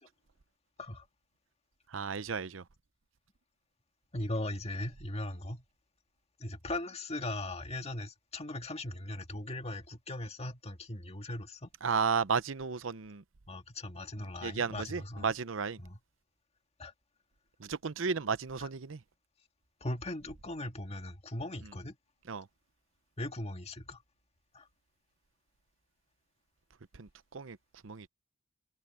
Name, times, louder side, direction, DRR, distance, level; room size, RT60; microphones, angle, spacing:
voice 1, 1.9-2.6 11.8-13.2 14.4-15.8 17.6-19.0 21.6-21.7 22.3-22.5 26.9-27.6 27.8-28.1, right 5 dB, 80° right, 0.8 m, -33 dB
voice 2, 4.1-5.6 6.4-11.7 13.5-15.3 15.8-16.0 16.8-16.9 19.8-22.0 23.2-24.0 24.5-24.7, left 1 dB, 35° left, 1.8 m, -39 dB
head